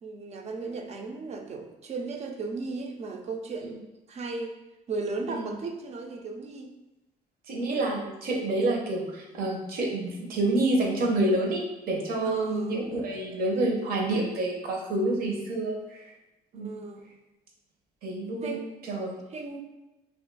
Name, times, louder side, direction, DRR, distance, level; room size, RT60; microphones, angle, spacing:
voice 1, 0.0-4.6 4.9-6.8 12.2-12.9 16.5-17.0 18.4-18.7 19.3-19.6, right 3 dB, 40° right, 4 dB, 0.5 m, -36 dB
voice 2, 7.5-16.1 16.5-16.7 18.0-18.6 18.8-19.1, right 2 dB, 60° right, 0 dB, 0.8 m, -28 dB
2.7 x 2.5 x 3.8 m, 0.98 s
cardioid pair, 110°, 17 cm